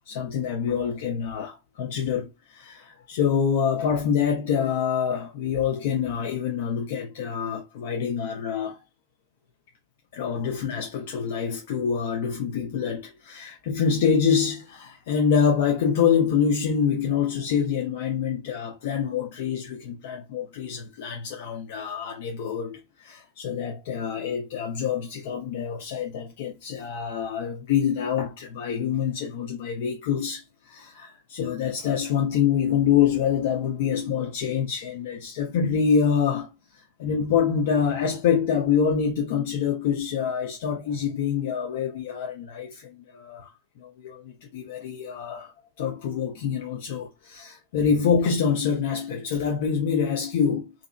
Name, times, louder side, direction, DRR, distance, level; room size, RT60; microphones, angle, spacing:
voice 1, 0.1-8.8 10.1-45.5 45.8-50.7, left 7 dB, 55° left, 0.5 m, -26 dB
2.6 x 2.4 x 2.2 m
figure-of-eight pair, 90°, 0 cm